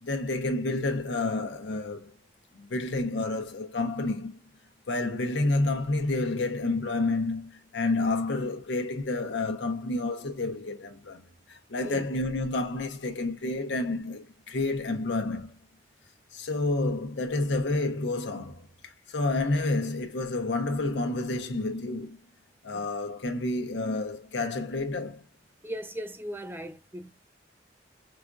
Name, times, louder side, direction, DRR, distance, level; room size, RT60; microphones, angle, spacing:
voice 1, 0.0-2.1 2.5-4.4 4.9-11.2 11.5-15.6 16.3-22.2 22.6-25.2, left 2 dB, 90° left, 0.7 m, -29 dB
voice 2, 25.6-27.1, equal, 10° right, 0.4 m, -38 dB
5.0 x 2.3 x 2.4 m
head